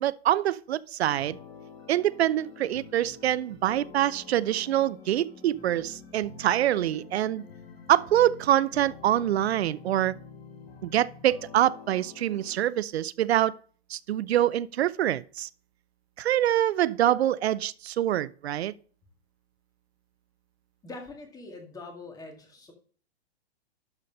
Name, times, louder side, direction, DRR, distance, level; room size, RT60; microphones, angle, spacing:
voice 1, 0.0-1.4 1.9-7.4 7.9-10.1 10.8-13.5 13.9-15.5 16.2-18.7, right 12 dB, 80° right, 0.5 m, -25 dB
sound 1, 1.2-12.6, left 5 dB, 70° left, 4.9 m, -48 dB
voice 2, 20.8-22.7, left 3 dB, 10° left, 1.9 m, -43 dB
11.5 x 4.2 x 5.3 m
hypercardioid pair, 130°, 31 cm